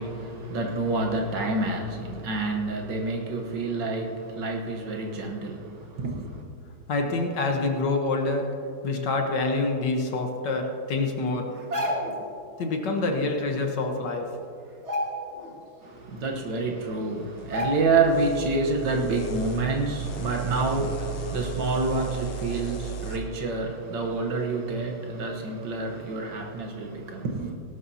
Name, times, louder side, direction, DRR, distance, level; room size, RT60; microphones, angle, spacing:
voice 1, 0.0-6.4 15.8-27.5, right 3 dB, 60° right, 1.6 m, -28 dB
voice 2, 6.9-8.5 8.8-11.5 12.6-14.3, left 3 dB, 60° left, 1.5 m, -26 dB
sound 1, 11.5-12.3 13.7-13.8 14.1-14.4 14.7-15.6 16.0-16.1 16.8-16.9 17.5-18.1 18.5-18.7, equal, 35° right, 1.8 m, -31 dB
sound 2, 17.4-23.2, right 5 dB, 75° left, 1.8 m, -36 dB
18.0 x 12.0 x 2.8 m
omnidirectional pair, 2.3 m